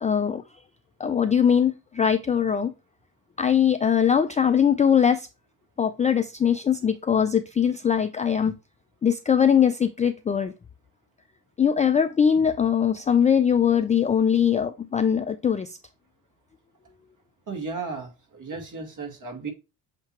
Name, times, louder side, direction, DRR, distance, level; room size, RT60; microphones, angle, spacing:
voice 1, 0.0-0.4 1.0-2.7 3.4-5.3 5.8-8.5 9.0-10.5 11.6-15.8, left 8 dB, 15° left, 0.4 m, -21 dB
voice 2, 17.5-19.5, right 4 dB, 40° right, 2.4 m, -34 dB
7.7 x 2.8 x 4.4 m
hypercardioid pair, 55°, 47 cm